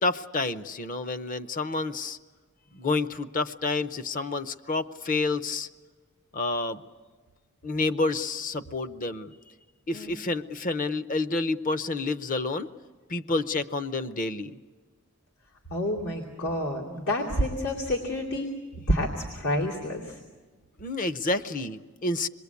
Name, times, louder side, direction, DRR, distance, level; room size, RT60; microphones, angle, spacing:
voice 1, 0.0-2.2 2.7-5.7 6.3-6.8 7.6-9.3 9.9-12.7 13.1-14.5 20.8-22.3, left 3 dB, 35° left, 11 dB, 0.7 m, -29 dB
voice 2, 15.7-18.5 18.9-20.2, equal, 75° left, -3 dB, 2.8 m, -28 dB
27.0 x 21.5 x 8.3 m, 1.4 s
head